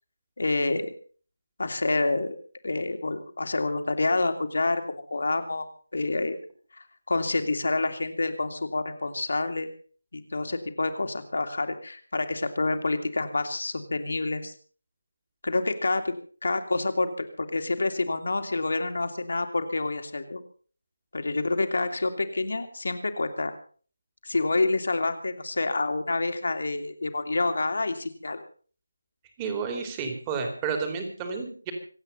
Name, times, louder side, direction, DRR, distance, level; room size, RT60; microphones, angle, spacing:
voice 1, 0.4-0.9 1.6-2.3 2.6-5.7 5.9-6.4 6.7-9.7 10.1-14.5 15.4-16.1 16.4-20.4 21.1-23.5 24.2-28.4, left 3 dB, 55° left, 7 dB, 2.5 m, -28 dB
voice 2, 29.4-31.7, right 5 dB, 15° right, 5 dB, 2.9 m, -31 dB
26.0 x 8.9 x 5.5 m, 0.42 s
figure-of-eight pair, 160°, 0 cm